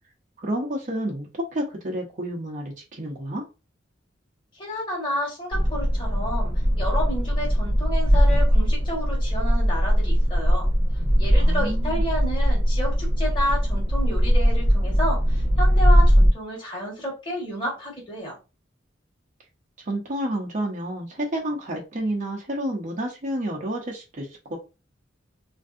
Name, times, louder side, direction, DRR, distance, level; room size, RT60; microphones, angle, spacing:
voice 1, 0.4-3.4 11.3-12.0 19.9-24.6, right 1 dB, 45° right, -1 dB, 0.7 m, -30 dB
voice 2, 4.5-10.7 11.2-18.4, equal, 25° left, -5 dB, 1.4 m, -31 dB
sound 1, 5.5-16.3, equal, 60° left, 1.1 m, -20 dB
3.2 x 2.6 x 2.5 m, 0.29 s
head